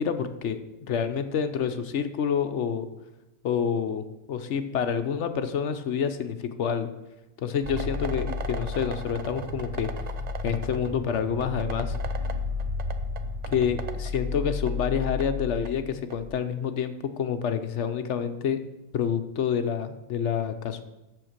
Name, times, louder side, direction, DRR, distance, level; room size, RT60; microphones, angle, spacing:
voice 1, 0.0-2.9 3.4-6.9 7.4-9.9 10.4-11.9 13.5-18.6 18.9-20.8, left 7 dB, 60° left, 9 dB, 0.9 m, -28 dB
sound 1, 7.6-16.3, left 2 dB, 50° right, 0.5 m, -32 dB
7.7 x 6.4 x 6.5 m, 0.98 s
omnidirectional pair, 1.5 m